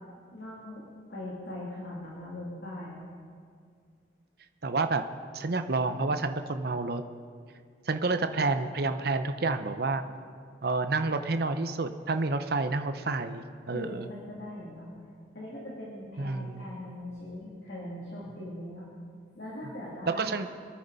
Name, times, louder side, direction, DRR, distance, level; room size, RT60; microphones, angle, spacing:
voice 1, 0.3-3.0 13.7-14.9 15.3-18.9 19.3-20.3, left 1 dB, 60° left, -6 dB, 2.6 m, -40 dB
voice 2, 4.6-5.0 5.3-7.0 7.9-10.0 10.6-14.0 16.2-16.6 20.2-20.5, right 3 dB, 55° right, 8 dB, 0.7 m, -29 dB
25.0 x 9.4 x 4.0 m, 2.2 s
head